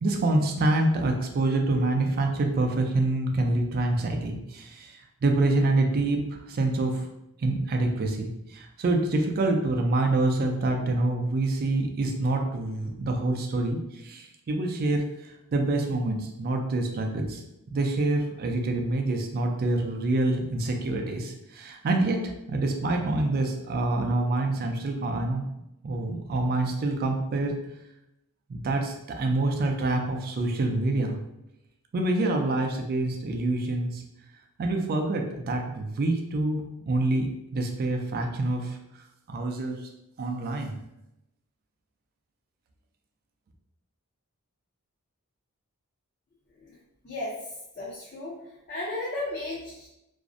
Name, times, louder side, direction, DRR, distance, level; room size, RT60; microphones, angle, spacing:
voice 1, 0.0-7.1 7.4-17.4 17.7-25.4 25.8-27.6 28.5-31.2 31.9-34.0 34.6-37.3 37.5-38.8 39.3-39.8 40.2-40.8, right 2 dB, 45° right, 3 dB, 0.3 m, -26 dB
voice 2, 47.8-48.3 48.7-49.9, left 2 dB, 45° left, -6 dB, 0.5 m, -34 dB
2.5 x 2.0 x 2.4 m, 0.87 s
head